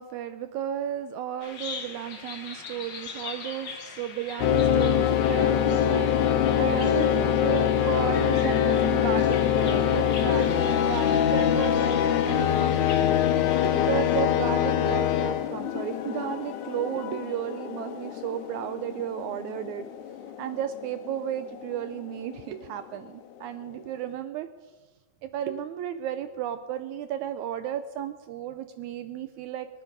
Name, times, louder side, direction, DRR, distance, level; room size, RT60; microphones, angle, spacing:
voice 1, 0.0-6.1 6.6-13.3 13.6-19.9 20.4-24.5 25.2-29.7, right 10 dB, 80° right, 11 dB, 1.7 m, -34 dB
Bird vocalization bird call bird song, 1.4-14.2, left 5 dB, 50° left, 1.4 m, -41 dB
sound 1, 4.4-22.6, left 9 dB, 75° left, 2.1 m, -24 dB
23.5 x 9.3 x 5.2 m, 1.3 s
omnidirectional pair, 3.9 m